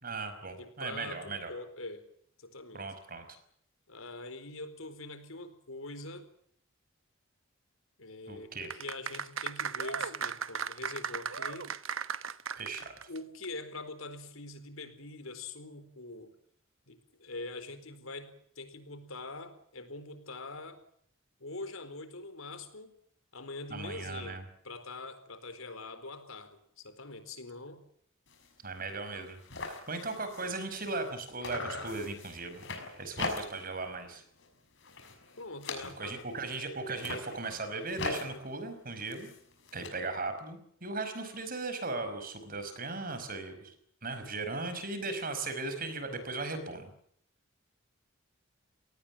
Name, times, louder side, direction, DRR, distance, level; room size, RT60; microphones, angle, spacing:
voice 1, 0.0-1.5 2.7-3.2 8.3-8.7 12.6-13.1 23.7-24.4 28.6-32.6 33.0-34.2 35.8-39.3 39.7-43.7 44.0-46.9, right 3 dB, 45° right, 9 dB, 5.3 m, -37 dB
voice 2, 0.6-2.0 2.4-2.9 3.9-6.3 8.0-11.7 13.1-16.3 16.9-20.8 21.4-22.9 23.3-27.8 35.4-36.2, left 2 dB, 85° left, 10 dB, 4.3 m, -44 dB
sound 1, 8.6-13.2 13.4-13.5, right 7 dB, 70° right, 1.1 m, -36 dB
sound 2, 28.3-28.5 28.9-29.0 29.2-31.1 31.4-33.8 34.1-34.5 34.8-36.3 36.8-39.9, left 3 dB, 60° left, 6.3 m, -41 dB
26.5 x 19.0 x 7.4 m, 0.65 s
head